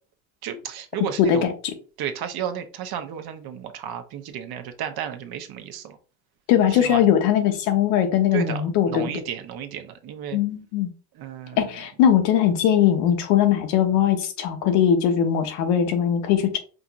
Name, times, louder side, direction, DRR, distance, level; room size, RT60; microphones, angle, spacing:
voice 1, 0.4-1.5 2.0-6.0 6.7-7.0 8.3-8.6 8.9-10.4 11.1-11.7, right 9 dB, 50° right, 0.9 m, -33 dB
voice 2, 1.2-1.5 6.5-9.1 10.3-10.9 11.6-16.6, left 9 dB, 85° left, 1.0 m, -20 dB
5.0 x 2.8 x 2.5 m
supercardioid pair, 100°, 46 cm